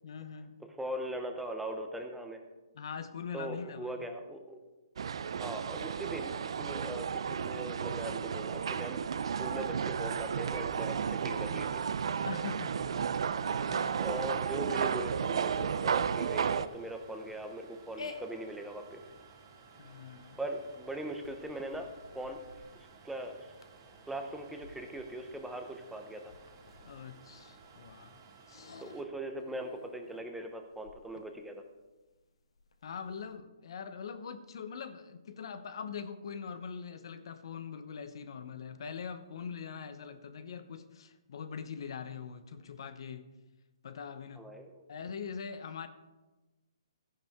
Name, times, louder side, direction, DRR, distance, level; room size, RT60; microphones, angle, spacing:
voice 1, 0.0-0.6 2.7-4.1 12.2-13.1 13.6-14.1 19.8-20.4 26.8-28.2 28.5-28.8 32.8-43.4 43.8-44.5 44.9-45.9, left 6 dB, 60° left, 11 dB, 0.9 m, -43 dB
voice 2, 0.8-2.4 3.3-4.6 5.3-11.8 14.0-19.0 20.4-21.9 22.1-22.4 23.0-23.5 24.1-26.3 28.8-31.6 44.4-44.8, right 1 dB, 5° right, 4 dB, 0.8 m, -40 dB
sound 1, 5.0-16.7, right 7 dB, 65° right, 0.5 m, -33 dB
sound 2, 13.7-29.0, right 5 dB, 35° right, 2.5 m, -57 dB
sound 3, 13.9-33.4, left 4 dB, 85° left, 1.3 m, -54 dB
13.5 x 10.0 x 3.6 m, 1.1 s
hypercardioid pair, 155°, 3 cm